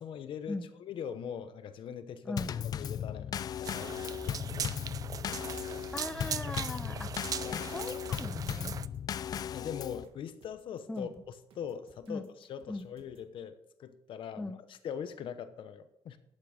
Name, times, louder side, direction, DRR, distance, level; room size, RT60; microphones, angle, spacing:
voice 1, 0.0-2.4 2.8-4.7 7.4-7.7 9.5-11.1 11.6-16.2, left 8 dB, 65° left, 11 dB, 0.9 m, -42 dB
Drum kit / Snare drum / Bass drum, 2.4-10.0, left 9 dB, 45° left, 0.4 m, -37 dB
sound 1, 3.6-8.9, right 8 dB, 40° right, 0.4 m, -40 dB
voice 2, 5.9-7.1 7.5-8.8 10.9-11.1 12.1-12.3 12.7-12.9 14.3-14.6, left 2 dB, 10° left, 8 dB, 0.7 m, -39 dB
sound 2, 8.9-13.3, right 5 dB, 75° right, 2.0 m, -64 dB
12.0 x 8.8 x 5.1 m, 0.82 s
cardioid pair, 155°, 9 cm